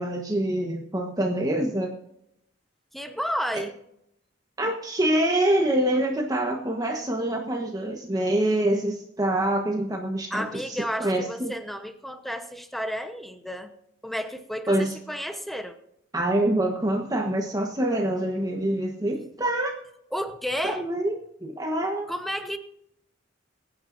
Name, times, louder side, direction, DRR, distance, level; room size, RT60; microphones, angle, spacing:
voice 1, 0.0-2.0 3.5-3.6 4.6-11.5 14.7-14.9 16.1-19.8 20.6-22.1, right 1 dB, 20° right, 1 dB, 1.3 m, -26 dB
voice 2, 2.9-3.8 10.3-13.7 14.0-15.8 20.1-20.9 22.1-22.6, equal, ahead, 8 dB, 1.0 m, -32 dB
23.0 x 9.5 x 2.7 m, 0.77 s
head